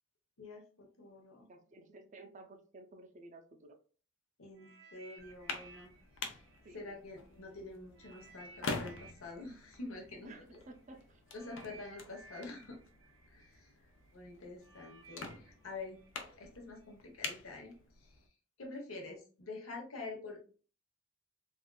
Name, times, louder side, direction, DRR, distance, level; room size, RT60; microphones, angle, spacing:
voice 1, 0.4-1.5 4.4-5.9 6.7-10.6 11.3-12.8 13.3-13.7 14.1-16.0 16.4-18.2 18.6-20.5, left 3 dB, 90° left, 1 dB, 0.9 m, -47 dB
voice 2, 1.5-3.8 6.6-6.9 10.2-11.2, right 2 dB, 35° right, 6 dB, 0.4 m, -54 dB
sound 1, 4.5-7.5 7.9-16.9 17.7-17.8, right 4 dB, 75° right, 0.6 m, -59 dB
sound 2, 5.2-18.3, left 4 dB, 65° left, 0.5 m, -47 dB
3.5 x 2.4 x 2.2 m, 0.40 s
head